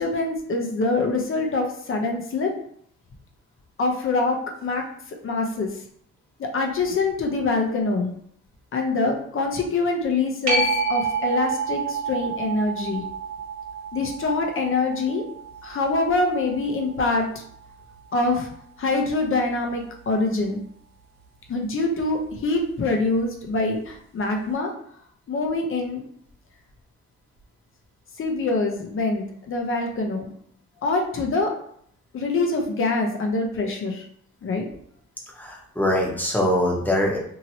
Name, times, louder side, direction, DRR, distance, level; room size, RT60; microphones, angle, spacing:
voice 1, 0.0-2.5 3.8-4.8 5.2-5.7 6.4-8.1 8.7-10.6 10.9-13.0 13.9-15.2 15.6-17.3 18.1-18.5 18.8-20.6 21.5-24.7 25.3-26.0 28.2-30.3 30.8-31.5 32.1-34.0 34.4-34.7, left 3 dB, 45° left, 2 dB, 0.8 m, -24 dB
sound 1, 10.5-17.6 23.2-23.3, right 4 dB, 60° right, 1.1 m, -29 dB
voice 2, 35.4-37.2, left 1 dB, 5° left, -2 dB, 1.0 m, -23 dB
2.9 x 2.8 x 2.8 m, 0.65 s
cardioid pair, 90°, 30 cm